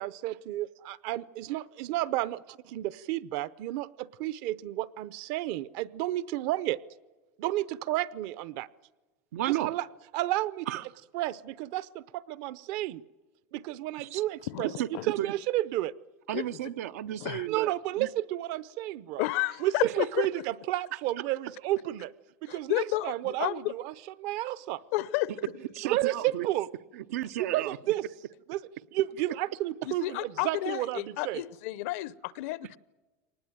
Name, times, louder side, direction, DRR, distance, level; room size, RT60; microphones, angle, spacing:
voice 1, 0.0-2.4 2.7-6.8 7.4-8.7 9.5-9.8 10.1-10.7 11.1-13.0 13.5-14.7 15.1-15.9 17.5-19.2 19.6-22.1 22.4-23.9 24.2-24.8 25.8-26.7 27.4-28.0 28.5-28.6 28.9-31.4, right 15 dB, 50° right, 18 dB, 0.7 m, -31 dB
voice 2, 9.3-9.7 10.7-10.8 14.0-14.2 14.6-15.3 16.3-18.1 25.7-26.5 26.9-27.8, right 13 dB, 85° right, 11 dB, 0.8 m, -33 dB
voice 3, 14.5-15.1 16.3-16.4 17.2-17.5 19.2-20.3 22.5-23.7 24.9-25.3 29.8-32.8, left 17 dB, 65° left, 19 dB, 0.7 m, -31 dB
24.0 x 19.5 x 9.1 m, 1.2 s
supercardioid pair, 155°, 8 cm